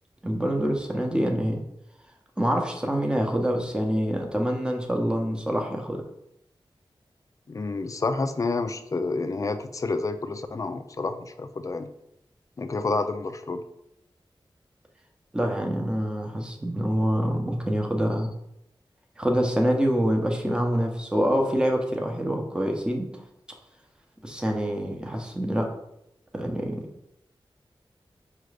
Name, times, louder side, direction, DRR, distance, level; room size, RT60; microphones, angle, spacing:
voice 1, 0.2-1.6 2.4-6.0 15.3-18.3 19.2-23.1 24.2-25.7 26.3-26.8, equal, 10° right, 1 dB, 0.7 m, -26 dB
voice 2, 7.5-11.9 12.6-13.6, left 3 dB, 35° left, 9 dB, 0.3 m, -29 dB
4.8 x 2.4 x 3.2 m, 0.81 s
wide cardioid pair, 65°, 9 cm